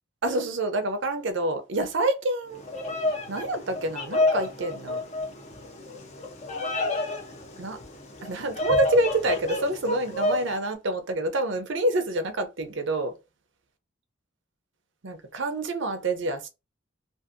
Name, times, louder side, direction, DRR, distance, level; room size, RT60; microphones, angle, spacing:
voice 1, 0.2-2.6 3.3-5.0 7.6-7.8 8.2-13.1 15.0-16.5, right 1 dB, 65° right, 0.6 m, -27 dB
Bird vocalization bird call bird song, 2.5-10.6, left 2 dB, 35° left, 0.6 m, -29 dB
2.6 x 2.5 x 2.5 m
head